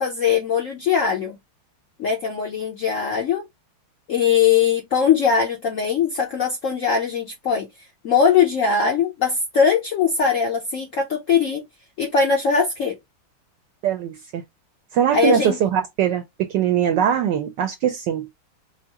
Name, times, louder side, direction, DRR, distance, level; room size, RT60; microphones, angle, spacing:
voice 1, 0.0-1.4 2.0-3.4 4.1-11.6 12.0-13.0 15.1-15.6, left 6 dB, 70° left, 0.7 m, -21 dB
voice 2, 13.8-14.4 14.9-16.2 16.5-18.3, right 9 dB, 75° right, 1.0 m, -21 dB
4.5 x 2.1 x 2.8 m
omnidirectional pair, 2.3 m